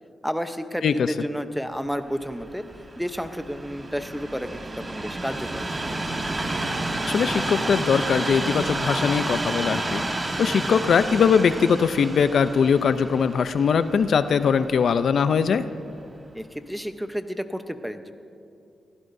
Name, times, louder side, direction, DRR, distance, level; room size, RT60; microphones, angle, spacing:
voice 1, 0.2-2.6 3.0-5.8 16.3-18.1, equal, ahead, 8 dB, 0.9 m, -31 dB
voice 2, 0.8-1.1 7.1-15.7, left 6 dB, 70° left, 11 dB, 0.5 m, -21 dB
Train, 2.1-15.3 16.0-16.1, right 2 dB, 30° right, 1.4 m, -30 dB
28.0 x 16.0 x 2.7 m, 2.6 s
cardioid pair, 90°, 0 cm